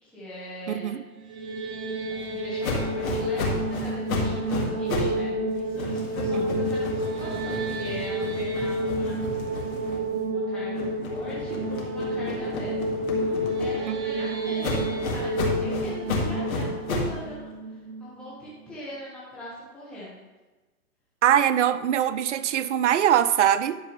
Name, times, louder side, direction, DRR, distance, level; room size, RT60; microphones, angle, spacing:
voice 1, 0.0-1.0 2.1-9.2 9.7-12.9 13.2-13.3 13.6-20.2, equal, ahead, -9 dB, 1.4 m, -41 dB
sound 1, 1.1-18.3, right 1 dB, 25° right, 0.8 m, -30 dB
sound 2, 2.6-5.2 5.5-10.3 10.7-14.1 14.6-17.2, left 3 dB, 65° left, 2.1 m, -32 dB
voice 2, 6.3-6.6 13.9-14.0 21.2-23.8, right 10 dB, 55° right, 14 dB, 0.6 m, -22 dB
10.5 x 6.7 x 3.2 m, 1.2 s
hypercardioid pair, 145°, 45 cm